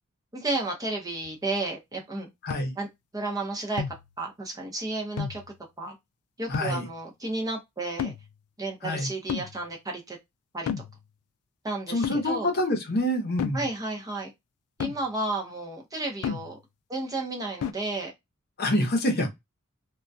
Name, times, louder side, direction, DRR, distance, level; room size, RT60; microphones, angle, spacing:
voice 1, 0.3-2.3 2.8-2.9 3.1-3.8 4.2-5.4 5.8-6.0 6.4-8.1 8.6-10.2 10.5-10.7 11.6-12.5 13.5-14.3 14.8-16.6 16.9-18.1, right 2 dB, 15° right, 0.6 m, -32 dB
sound 1, 1.2-1.4 2.5-2.7 3.8-4.1 5.2-5.5 6.5-6.9 8.0-8.3 9.3-9.6 10.7-11.0 12.0-12.3 13.4-13.7 14.8-15.0 16.2-16.6 17.6-17.7, left 7 dB, 85° left, 0.3 m, -32 dB
voice 2, 6.5-6.9 8.8-9.1 11.9-13.6 18.6-19.3, left 1 dB, 45° left, 0.7 m, -26 dB
2.3 x 2.1 x 2.5 m
head